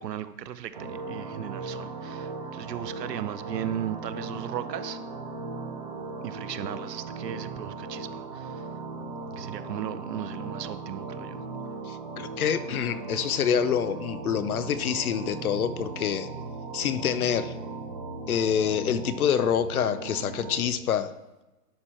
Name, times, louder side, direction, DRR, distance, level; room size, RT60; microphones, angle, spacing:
voice 1, 0.0-5.0 6.2-8.6 9.4-11.4, right 10 dB, 80° right, 13 dB, 0.8 m, -36 dB
sound 1, 0.7-20.6, right 3 dB, 30° right, 0.6 m, -38 dB
voice 2, 11.9-16.3 16.7-17.5 18.3-21.1, left 8 dB, 65° left, 13 dB, 0.7 m, -26 dB
11.0 x 4.5 x 4.3 m, 1.0 s
hypercardioid pair, 170°, 48 cm